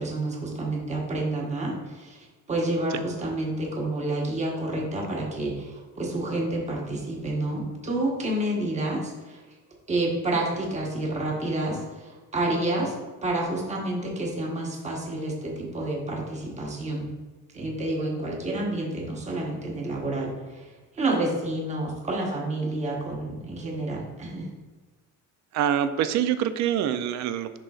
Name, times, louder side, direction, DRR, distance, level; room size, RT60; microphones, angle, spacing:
voice 1, 0.0-9.4 9.9-12.9 13.2-17.1 17.5-24.5, right 2 dB, 20° right, -1 dB, 1.1 m, -29 dB
voice 2, 25.5-27.6, right 10 dB, 65° right, 11 dB, 0.5 m, -25 dB
10.5 x 3.8 x 2.4 m, 1.3 s
cardioid pair, 155°, 30 cm